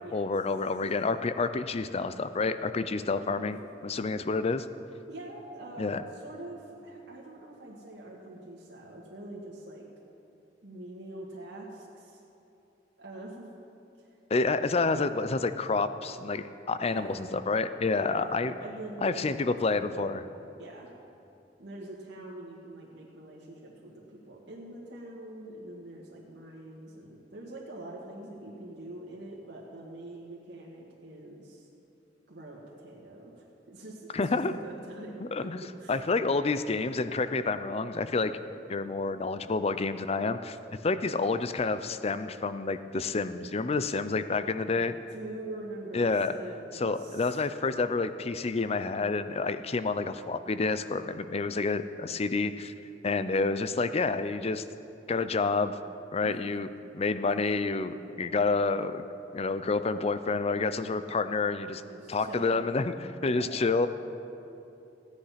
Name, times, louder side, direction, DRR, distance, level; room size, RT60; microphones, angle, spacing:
voice 1, 0.1-4.7 5.8-6.0 14.3-18.5 19.0-20.3 34.1-34.6 35.3-35.6 35.9-38.3 38.7-40.6 40.8-44.9 45.9-46.3 46.7-52.7 53.0-54.6 55.1-55.8 56.1-56.7 56.9-59.1 59.3-61.8 62.1-63.9, left 3 dB, 35° left, 12 dB, 0.5 m, -29 dB
voice 2, 3.2-3.5 5.1-9.9 10.6-12.2 13.0-13.5 16.9-17.2 18.0-20.1 20.6-20.9 21.6-31.7 32.3-36.0 44.7-47.4 56.2-56.5 61.9-62.7 63.3-63.6, right 1 dB, 75° right, -3 dB, 1.8 m, -44 dB
15.5 x 9.9 x 5.8 m, 2.8 s
head